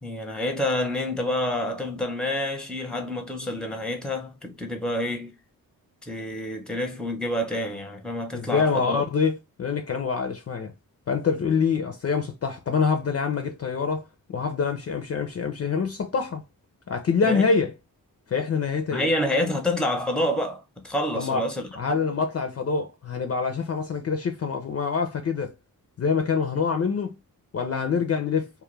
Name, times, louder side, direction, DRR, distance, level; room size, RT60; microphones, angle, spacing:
voice 1, 0.0-5.4 6.0-9.0 17.2-17.4 18.9-22.0, left 1 dB, ahead, 0.6 m, -28 dB
voice 2, 8.3-10.7 11.1-16.4 16.9-17.7 18.3-19.1 21.1-21.4 21.8-25.5 26.0-27.2 27.5-28.5, left 5 dB, 40° left, 0.4 m, -25 dB
2.2 x 2.1 x 3.0 m
cardioid pair, 80°, 36 cm